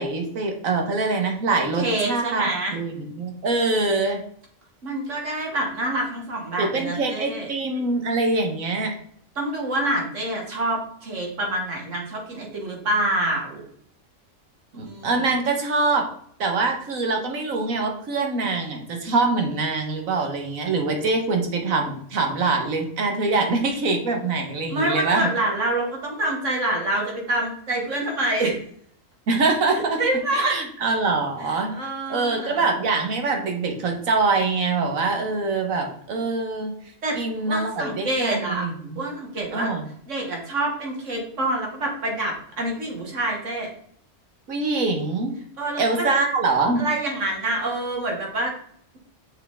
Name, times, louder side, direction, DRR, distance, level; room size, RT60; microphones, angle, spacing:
voice 1, 0.0-4.2 6.6-8.9 14.7-16.1 16.4-25.3 29.3-30.0 30.3-31.7 32.1-36.7 37.1-39.0 39.5-39.8 44.5-45.3 45.8-46.9, right 3 dB, 90° right, 3 dB, 1.8 m, -24 dB
voice 2, 1.8-2.8 4.8-7.5 9.4-13.6 14.7-15.3 24.7-28.6 29.8-30.6 31.4-32.6 37.0-38.7 39.0-39.7 40.1-43.7 45.6-46.1 46.8-48.5, right 1 dB, 65° right, 0 dB, 2.2 m, -26 dB
6.7 x 6.1 x 3.7 m, 0.64 s
omnidirectional pair, 1.4 m